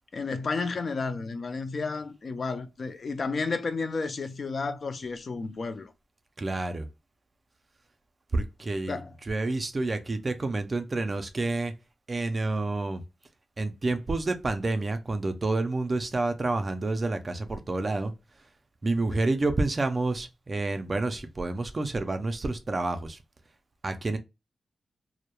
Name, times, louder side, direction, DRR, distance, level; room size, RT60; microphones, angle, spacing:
voice 1, 0.1-5.9 8.9-9.1 19.1-19.2, left 4 dB, 50° left, 0.4 m, -32 dB
voice 2, 6.4-6.9 8.3-9.0 9.3-11.7 12.1-13.0 13.6-18.1 18.8-23.2 23.8-24.2, right 2 dB, 35° right, 0.4 m, -29 dB
2.2 x 2.0 x 2.9 m
wide cardioid pair, 105°, 0 cm